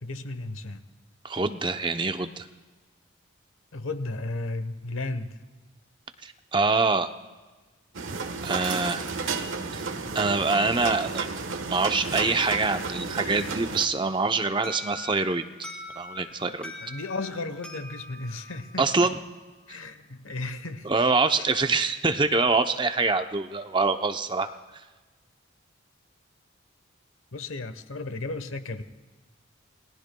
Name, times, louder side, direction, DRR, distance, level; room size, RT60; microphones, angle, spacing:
voice 1, 0.0-0.8 3.7-5.3 16.8-19.1 19.7-20.9 21.4-21.5 27.3-28.8, left 2 dB, 90° left, 10 dB, 1.0 m, -34 dB
voice 2, 1.2-2.5 6.2-7.1 8.4-9.0 9.7-9.8 10.1-11.3 11.7-15.4 16.0-16.7 18.8-19.2 20.8-24.5, right 3 dB, 25° right, 8 dB, 0.6 m, -25 dB
sound 1, 7.9-13.9, right 4 dB, 80° right, 1.3 m, -32 dB
Alarm, 14.6-19.4, left 2 dB, 5° left, 2.6 m, -43 dB
28.5 x 18.5 x 2.3 m, 1.3 s
head